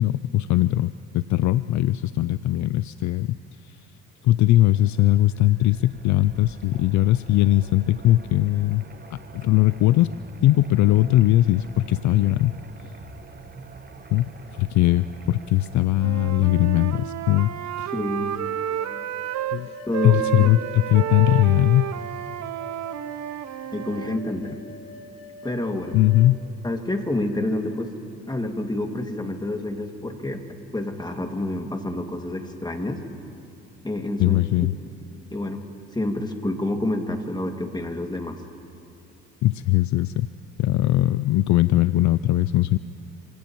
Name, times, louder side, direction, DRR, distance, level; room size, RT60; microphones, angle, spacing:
voice 1, 0.0-3.4 3.6-3.8 4.2-8.8 9.1-10.1 10.4-12.6 12.8-12.9 14.1-17.5 17.8-17.9 19.5-19.7 20.0-21.9 25.9-26.4 34.2-34.7 39.4-40.3 40.6-42.8, left 15 dB, 55° left, 15 dB, 0.5 m, -20 dB
sound 1, 4.3-15.8, right 3 dB, 25° right, 1.4 m, -45 dB
Wind instrument woodwind instrument, 16.0-19.6 19.9-24.2, right 11 dB, 55° right, 0.7 m, -30 dB
voice 2, 17.9-18.4 19.9-20.5 23.7-24.6 25.4-26.0 26.6-27.9 28.3-30.5 30.7-33.0 33.8-34.4 35.3-35.6 35.9-38.4, left 1 dB, 10° left, 3 dB, 2.2 m, -28 dB
sound 2, 18.8-26.3, left 2 dB, 70° left, 1.3 m, -43 dB
27.0 x 17.5 x 3.0 m, 2.6 s
hypercardioid pair, 55°, 35 cm